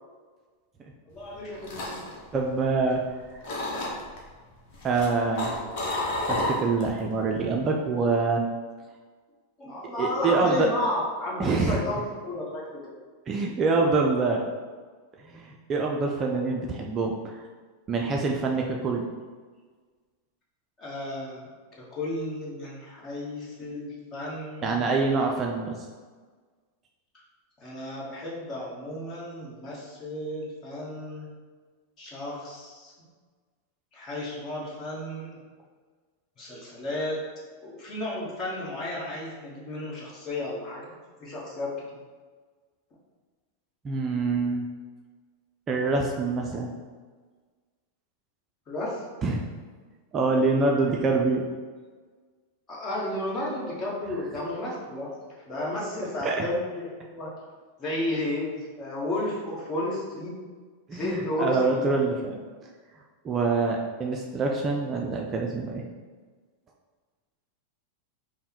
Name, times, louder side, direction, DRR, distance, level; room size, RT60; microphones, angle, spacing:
voice 1, 1.1-2.0 9.6-13.0 13.8-14.0 20.8-21.5 21.8-24.9 27.6-31.3 32.0-32.9 33.9-35.4 36.4-37.2 37.6-40.9 41.2-41.8 48.7-49.0 52.7-55.1 55.5-57.3 57.8-60.4 60.9-61.9, left 1 dB, 30° left, -4 dB, 1.3 m, -33 dB
sound 1, 1.2-3.1 3.4-4.2 4.7-7.0 7.3-7.7, left 2 dB, 45° left, 1.0 m, -31 dB
voice 2, 2.3-3.0 4.8-5.5 6.3-8.4 10.0-10.7 11.4-11.8 13.3-14.4 15.2-17.4 17.9-19.0 24.6-25.9 36.5-36.6 43.8-44.7 45.7-46.7 49.2-49.5 50.1-51.4 56.2-56.4 60.9-62.4 63.2-65.8, right 3 dB, 25° right, 1 dB, 0.4 m, -25 dB
5.3 x 2.1 x 4.4 m, 1.5 s
figure-of-eight pair, 90°, 0 cm